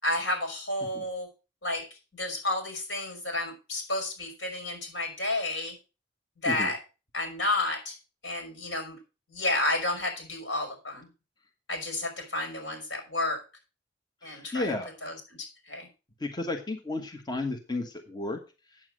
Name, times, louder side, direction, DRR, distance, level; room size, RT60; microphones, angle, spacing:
voice 1, 0.0-1.3 1.6-1.8 2.1-5.8 6.4-6.8 7.1-8.0 8.2-9.0 9.3-11.1 11.7-13.4 14.2-14.7 15.0-15.4 15.6-15.9, left 2 dB, 80° left, 3 dB, 5.2 m, -31 dB
voice 2, 14.2-14.9 16.2-18.4, left 2 dB, 25° left, 3 dB, 1.4 m, -33 dB
8.8 x 7.3 x 6.2 m, 0.31 s
head